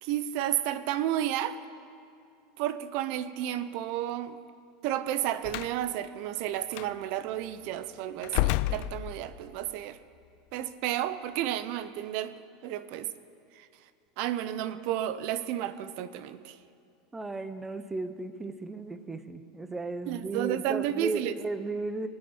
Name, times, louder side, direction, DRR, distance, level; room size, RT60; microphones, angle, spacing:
voice 1, 0.0-1.6 2.6-4.4 4.8-10.0 10.5-12.4 12.6-13.1 13.6-13.7 14.2-16.6 20.1-21.3, right 12 dB, 50° right, 13 dB, 0.8 m, -32 dB
Slam, 5.4-5.8 6.7-6.9 8.2-9.5, left 17 dB, 50° left, 0.4 m, -30 dB
voice 2, 17.1-22.1, right 3 dB, 10° right, 11 dB, 0.8 m, -35 dB
23.0 x 9.5 x 5.6 m, 2.4 s
supercardioid pair, 150°, 3 cm